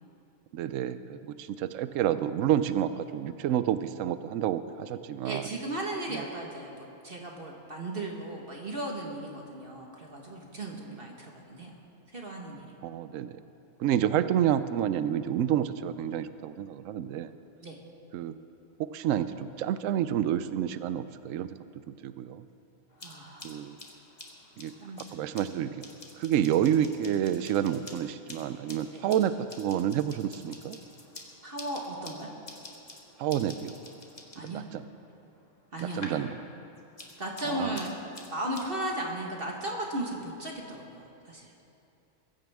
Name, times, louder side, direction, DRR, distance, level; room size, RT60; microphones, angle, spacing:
voice 1, 0.5-5.5 6.1-6.2 12.8-13.3 13.8-17.3 18.1-18.4 18.8-21.6 21.9-22.5 23.4-23.8 24.6-25.8 26.2-30.8 33.2-33.8 34.4-34.8 35.9-36.3 37.4-37.8, right 10 dB, 75° right, 13 dB, 0.9 m, -29 dB
voice 2, 5.2-11.7 12.1-12.7 17.6-17.8 23.0-23.6 24.8-25.3 28.9-29.0 31.4-32.3 34.3-34.6 35.7-36.2 37.2-37.9 38.3-41.5, right 1 dB, 45° right, -1 dB, 1.6 m, -36 dB
sound 1, 22.9-36.3 36.6-38.7, left 2 dB, 30° left, 1.6 m, -49 dB
22.5 x 15.0 x 3.5 m, 2.8 s
omnidirectional pair, 1.4 m